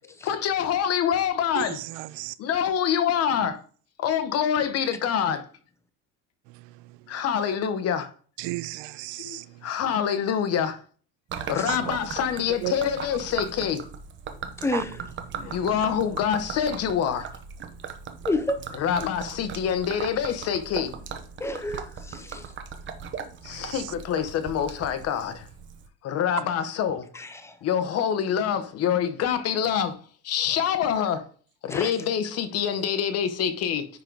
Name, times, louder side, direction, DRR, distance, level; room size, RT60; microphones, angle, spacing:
voice 1, 0.2-1.8 2.4-3.6 4.0-5.5 7.1-8.1 9.2-10.8 11.5-13.8 15.4-17.3 18.7-20.9 22.3-22.5 23.4-25.5 26.0-27.1 27.6-30.0 30.2-31.3 31.6-33.9, left 8 dB, 45° left, 0.9 m, -26 dB
voice 2, 1.5-2.4 6.5-7.0 8.4-9.5 11.7-12.0 12.6-12.7 14.7-14.8 15.3-15.7 23.4-23.9, right 18 dB, 70° right, 0.5 m, -35 dB
Gurgling / Liquid, 11.3-25.9, right 6 dB, 30° right, 0.8 m, -38 dB
voice 3, 18.3-18.6 21.4-22.4 27.4-27.5 31.7-31.9, left 2 dB, 10° left, 0.6 m, -28 dB
9.8 x 3.8 x 4.6 m
cardioid pair, 165°, 36 cm